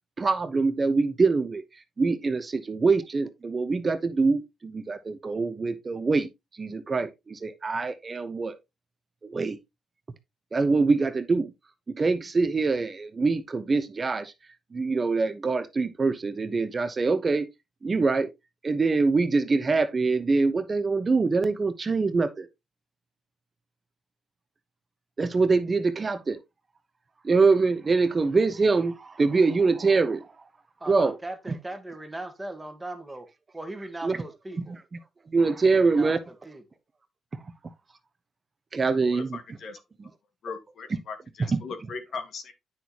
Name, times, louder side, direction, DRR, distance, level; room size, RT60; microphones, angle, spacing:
voice 1, 0.2-1.6 2.0-6.3 6.6-8.6 9.2-9.6 10.5-11.5 12.0-14.3 14.7-17.4 17.8-18.3 18.6-22.5 25.2-26.4 27.2-30.3 30.9-31.2 34.0-34.2 34.6-34.8 35.3-36.2 38.7-39.4 40.0-40.1 40.9-41.0 41.4-41.6, right 4 dB, 30° right, 1.0 m, -24 dB
voice 2, 30.8-33.3 33.5-34.8 35.7-36.1 36.4-36.6 39.0-39.2, right 2 dB, 10° right, 1.6 m, -38 dB
voice 3, 39.0-39.8 40.4-42.5, left 4 dB, 60° left, 1.8 m, -39 dB
9.1 x 6.3 x 2.9 m
cardioid pair, 90°, 0 cm